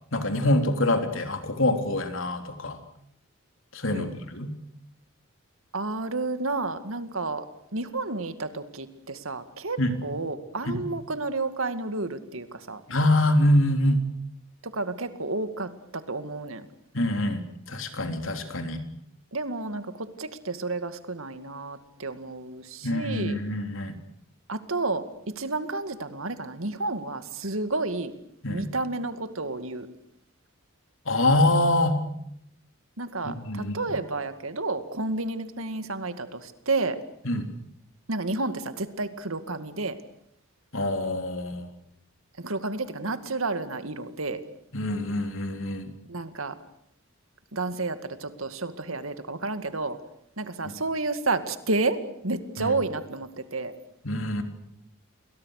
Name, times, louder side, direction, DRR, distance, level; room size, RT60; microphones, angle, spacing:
voice 1, 0.1-2.8 3.7-4.5 9.8-10.0 10.7-10.8 12.9-14.0 16.9-18.8 22.8-24.0 28.4-28.7 31.1-32.0 33.2-33.8 37.3-37.5 40.7-41.7 44.7-45.9 52.6-52.7 54.0-54.4, left 1 dB, 70° left, 6 dB, 3.6 m, -25 dB
voice 2, 5.7-7.4 7.7-12.8 14.6-16.7 19.3-23.4 24.5-28.1 28.5-29.9 33.0-37.0 38.1-40.0 42.4-44.4 46.1-46.5 47.5-50.0 50.4-53.7, right 3 dB, 80° right, 10 dB, 2.2 m, -31 dB
29.0 x 22.5 x 6.6 m, 0.73 s
head